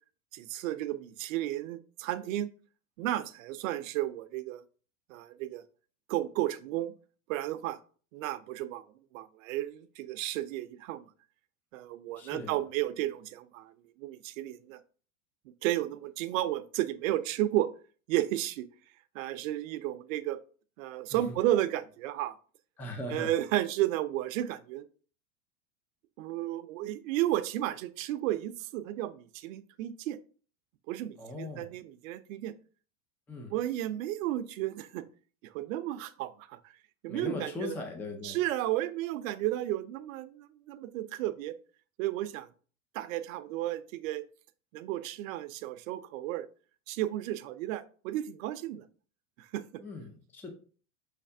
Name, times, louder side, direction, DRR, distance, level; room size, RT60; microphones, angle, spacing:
voice 1, 0.3-2.5 3.0-4.6 5.1-5.6 6.1-6.9 7.3-7.8 8.1-8.8 9.1-11.1 11.7-13.7 14.0-14.8 15.6-17.7 18.1-18.7 19.1-20.4 20.8-22.3 23.1-24.9 26.2-30.2 30.9-32.5 33.5-35.0 35.5-36.6 37.0-37.7 38.2-41.6 42.0-42.5 42.9-44.2 44.7-46.5 46.9-48.8 49.4-49.6, right 14 dB, 70° right, 0.6 m, -33 dB
voice 2, 12.2-12.6 21.1-21.4 22.8-23.4 31.2-31.7 33.3-33.6 37.1-38.4 49.8-50.5, left 2 dB, 5° left, 0.3 m, -39 dB
5.7 x 3.3 x 2.6 m
supercardioid pair, 135°, 41 cm